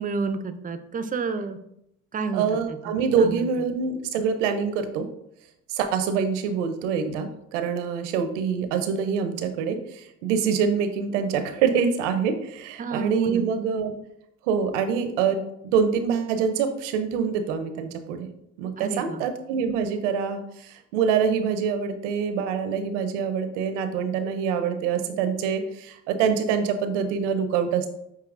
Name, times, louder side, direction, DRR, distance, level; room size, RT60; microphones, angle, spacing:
voice 1, 0.0-1.6 2.1-2.4 3.2-3.5 12.8-13.5 18.8-19.2, right 4 dB, 25° right, 10 dB, 0.4 m, -30 dB
voice 2, 2.3-5.1 5.7-13.9 14.5-18.3 18.6-27.9, right 6 dB, 90° right, 9 dB, 0.5 m, -25 dB
6.0 x 2.8 x 2.4 m, 0.78 s
hypercardioid pair, 65°, 35 cm